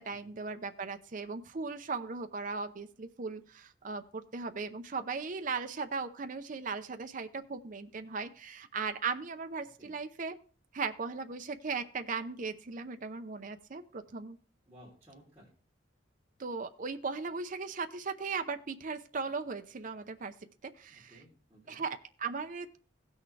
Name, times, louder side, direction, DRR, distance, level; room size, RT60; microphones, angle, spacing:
voice 1, 0.0-10.3 10.7-14.4 16.4-20.3 20.8-21.1 21.7-22.8, right 4 dB, 45° right, 8 dB, 0.6 m, -37 dB
voice 2, 14.6-15.5 20.9-21.8, equal, 15° right, -7 dB, 3.3 m, -57 dB
16.5 x 6.4 x 3.3 m, 0.42 s
head